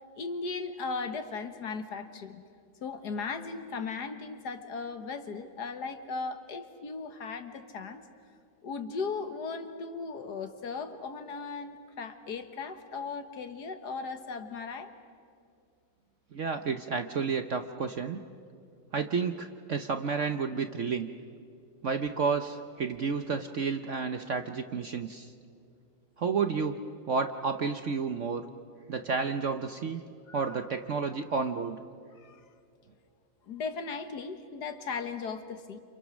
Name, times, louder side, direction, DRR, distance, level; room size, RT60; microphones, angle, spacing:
voice 1, 0.2-2.4 2.8-8.0 8.6-14.9 30.3-30.5 32.2-32.4 33.5-35.8, left 4 dB, 60° left, 8 dB, 1.8 m, -37 dB
voice 2, 16.3-18.2 18.9-21.1 21.8-25.3 26.2-26.8 27.1-28.5 28.9-30.0 30.3-31.8, right 5 dB, 55° right, 8 dB, 0.9 m, -31 dB
29.5 x 28.0 x 6.3 m, 2.4 s
omnidirectional pair, 2.0 m